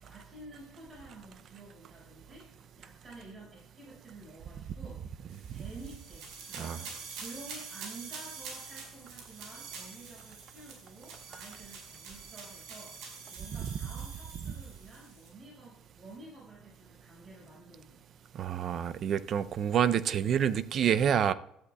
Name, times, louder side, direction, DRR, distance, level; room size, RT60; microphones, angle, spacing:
voice 1, 0.0-5.0 5.5-6.8 7.1-18.0, right 2 dB, 30° right, 5.2 m, -51 dB
sound 1, 5.3-15.3, right 5 dB, 80° right, 5.1 m, -46 dB
voice 2, 18.3-21.3, right 8 dB, 50° right, 0.5 m, -27 dB
16.5 x 12.5 x 2.3 m
cardioid pair, 120°, 0 cm